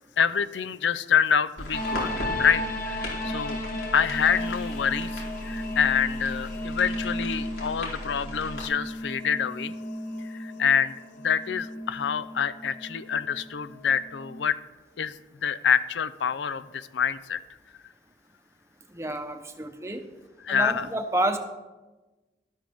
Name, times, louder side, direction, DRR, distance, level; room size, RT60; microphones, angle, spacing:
voice 1, 0.2-3.6 3.9-9.7 10.3-10.9 11.2-14.6 15.0-17.4 20.4-20.9, left 7 dB, 85° left, 14 dB, 0.5 m, -26 dB
sound 1, 1.6-8.7, left 1 dB, 70° left, 4.0 m, -37 dB
sound 2, 1.7-14.4, left 1 dB, 50° left, 1.3 m, -35 dB
voice 2, 18.9-20.1 20.5-21.4, right 1 dB, 15° right, 6 dB, 0.8 m, -29 dB
12.5 x 12.5 x 3.5 m, 1.2 s
head